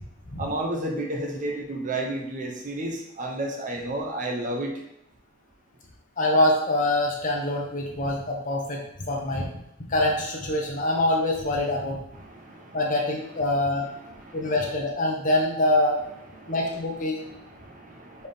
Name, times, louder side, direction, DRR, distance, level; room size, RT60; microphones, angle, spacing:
voice 1, 0.4-4.7 12.1-12.8 13.9-14.4 16.3-16.5 17.2-18.3, right 1 dB, 40° right, 1 dB, 0.7 m, -32 dB
voice 2, 6.2-8.8 9.1-9.5 9.9-12.0 12.7-13.9 14.3-16.0 16.5-17.2, left 1 dB, 40° left, 0 dB, 0.8 m, -24 dB
4.1 x 3.5 x 3.4 m, 0.82 s
head